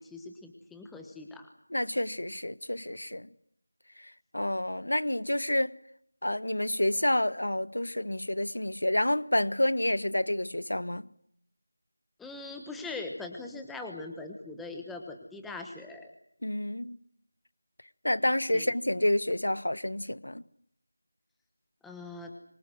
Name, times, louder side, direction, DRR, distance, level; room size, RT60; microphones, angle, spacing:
voice 1, 0.0-1.4 12.2-16.1 18.5-18.7 21.8-22.3, left 3 dB, ahead, 1.1 m, -41 dB
voice 2, 1.7-3.3 4.0-5.7 6.2-11.1 16.4-17.0 18.0-20.4, left 1 dB, 85° left, 1.4 m, -29 dB
24.5 x 22.5 x 7.7 m
figure-of-eight pair, 175°, 0 cm